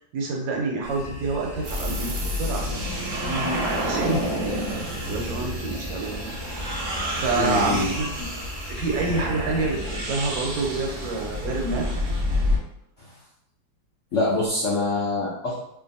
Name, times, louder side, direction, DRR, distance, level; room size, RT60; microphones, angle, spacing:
voice 1, 0.0-2.8 3.1-4.6 5.1-6.2 6.6-8.3 8.6-12.0, right 3 dB, 85° right, 0 dB, 1.4 m, -28 dB
sound 1, 0.8-10.0, left 1 dB, 35° left, 0.5 m, -38 dB
sound 2, 1.6-12.6, equal, 65° right, 0.8 m, -29 dB
voice 2, 7.4-7.9 13.0-13.1 14.1-15.6, left 2 dB, 80° left, -6 dB, 0.6 m, -25 dB
2.9 x 2.5 x 2.6 m, 0.78 s
omnidirectional pair, 2.1 m